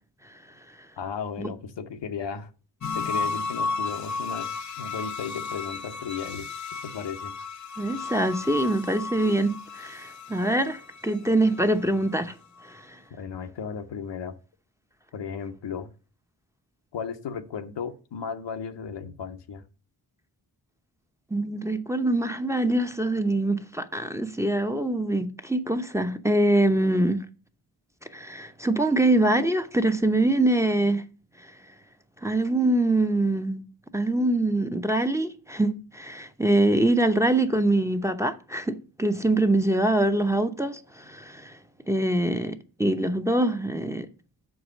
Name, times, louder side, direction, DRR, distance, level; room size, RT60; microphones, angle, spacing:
voice 1, 1.0-2.5 2.9-6.5 6.8-7.3 13.1-14.4 15.1-15.9 16.9-19.6, left 6 dB, 85° left, 0.9 m, -35 dB
sound 1, 2.8-12.1 12.6-12.7, left 4 dB, 45° left, 0.6 m, -34 dB
voice 2, 7.8-12.3 12.7-13.0 21.3-27.2 28.1-31.0 32.2-33.6 33.9-41.6 41.9-44.1, right 1 dB, 5° right, 0.8 m, -24 dB
6.3 x 4.8 x 6.3 m
cardioid pair, 65°, 42 cm